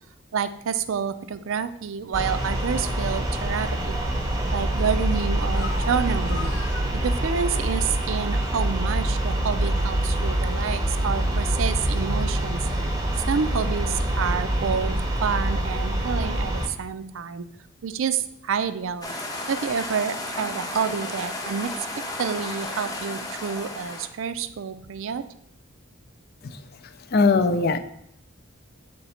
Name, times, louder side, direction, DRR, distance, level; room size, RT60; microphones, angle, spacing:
voice 1, 0.3-4.0 4.5-6.5 6.9-12.6 13.3-14.9 15.2-17.4 17.8-19.1 19.5-21.7 22.2-25.3, right 6 dB, 75° right, 11 dB, 0.4 m, -28 dB
sound 1, 2.1-16.7, right 1 dB, 15° right, 0.6 m, -25 dB
sound 2, 5.5-7.8 8.6-8.7 10.6-10.9 11.2-11.3 11.6-12.2 14.9-15.5, left 5 dB, 80° left, 1.0 m, -40 dB
sound 3, 19.0-24.1, left 1 dB, 20° left, 0.7 m, -33 dB
voice 2, 27.1-27.8, left 4 dB, 50° left, 9 dB, 0.4 m, -19 dB
6.9 x 3.3 x 4.2 m, 0.71 s
head